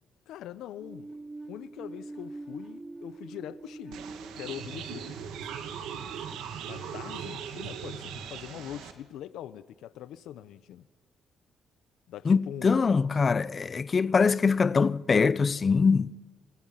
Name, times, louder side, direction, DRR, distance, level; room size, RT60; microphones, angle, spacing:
voice 1, 0.3-1.1 1.5-4.0 4.3-5.1 6.7-10.9 12.1-12.9, left 11 dB, 85° left, 0.9 m, -42 dB
sound 1, 0.8-6.5, right 2 dB, 20° right, 0.9 m, -45 dB
sound 2, 3.9-8.9, right 7 dB, 85° right, 2.4 m, -39 dB
voice 2, 12.2-16.2, left 5 dB, 35° left, 0.8 m, -23 dB
29.0 x 23.5 x 5.8 m
cardioid pair, 90°, 0 cm